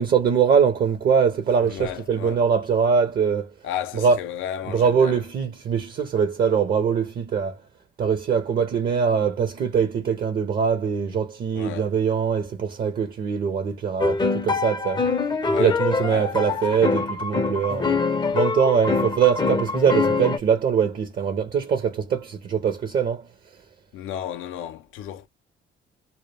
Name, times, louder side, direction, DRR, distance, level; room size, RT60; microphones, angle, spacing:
voice 1, 0.0-3.5 3.9-4.2 4.7-7.6 8.0-15.0 15.6-18.0 18.3-23.2, right 6 dB, 50° right, 0.5 m, -22 dB
voice 2, 1.7-2.4 3.6-5.2 11.5-11.9 15.5-16.9 23.9-25.3, left 10 dB, 85° left, 0.4 m, -34 dB
sound 1, 14.0-20.4, left 4 dB, 20° left, 0.4 m, -24 dB
2.1 x 2.1 x 3.1 m
cardioid pair, 90°, 20 cm